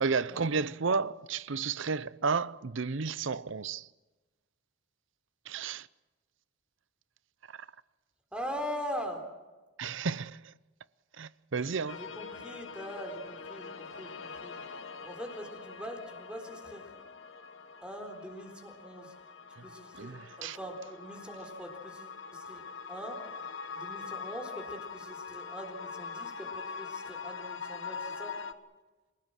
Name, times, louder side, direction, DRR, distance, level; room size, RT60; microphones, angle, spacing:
voice 1, 0.0-3.9 5.5-5.9 7.5-7.7 9.8-10.5 11.2-12.0 19.6-19.7 20.0-20.6, right 5 dB, 60° right, 0.6 m, -32 dB
voice 2, 8.3-9.2 11.9-14.6 15.0-17.1 17.8-19.1 19.6-23.3 23.7-28.4, equal, 5° right, 3.9 m, -42 dB
sound 1, 11.9-28.5, left 5 dB, 65° left, 1.3 m, -43 dB
28.5 x 17.5 x 7.6 m
head